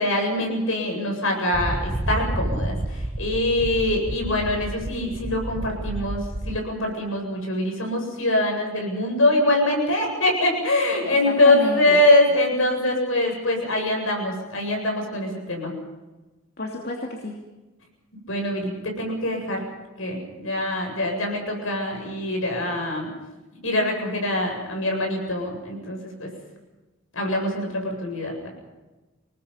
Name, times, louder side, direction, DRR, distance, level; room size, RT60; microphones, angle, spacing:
voice 1, 0.0-15.7 18.3-19.6 20.0-23.1 23.6-26.3 27.1-28.5, left 1 dB, 70° left, 2 dB, 8.0 m, -23 dB
sound 1, 1.5-6.6, right 1 dB, 25° right, 0.8 m, -30 dB
voice 2, 11.1-12.0 16.6-17.4, left 2 dB, 45° left, 0 dB, 2.6 m, -30 dB
28.0 x 19.5 x 5.8 m, 1.1 s
head